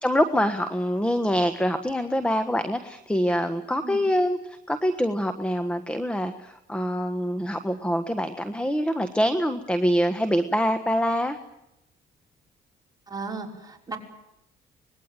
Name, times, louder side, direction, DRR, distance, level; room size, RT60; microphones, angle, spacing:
voice 1, 0.0-11.4, equal, 5° left, 10 dB, 1.4 m, -25 dB
voice 2, 13.1-14.0, right 4 dB, 20° right, 0 dB, 5.6 m, -35 dB
25.0 x 20.5 x 9.1 m, 0.87 s
cardioid pair, 90°, 20 cm